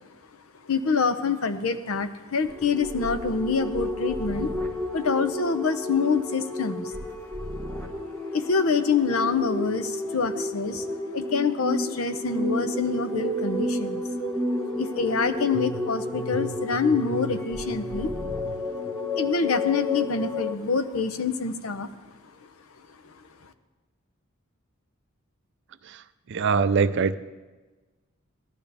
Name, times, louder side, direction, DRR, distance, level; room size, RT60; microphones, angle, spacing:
voice 1, 0.6-4.5 4.9-7.0 8.3-14.0 14.8-18.1 19.1-21.9 23.0-23.1, left 5 dB, 85° left, 11 dB, 0.7 m, -26 dB
sound 1, 2.5-20.6, left 1 dB, 10° left, 1.3 m, -31 dB
voice 2, 26.3-27.2, right 5 dB, 55° right, 13 dB, 0.4 m, -22 dB
16.5 x 12.0 x 3.4 m, 1.2 s
head